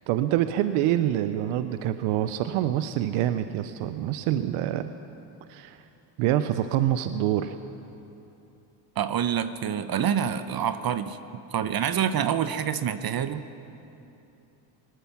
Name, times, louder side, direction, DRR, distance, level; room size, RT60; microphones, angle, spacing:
voice 1, 0.1-4.9 5.5-5.8 6.2-7.6, right 12 dB, 85° right, 11 dB, 0.6 m, -26 dB
voice 2, 9.0-11.2 11.5-13.4, right 8 dB, 45° right, 12 dB, 0.7 m, -27 dB
18.5 x 13.0 x 5.9 m, 2.9 s
supercardioid pair, 70°, 49 cm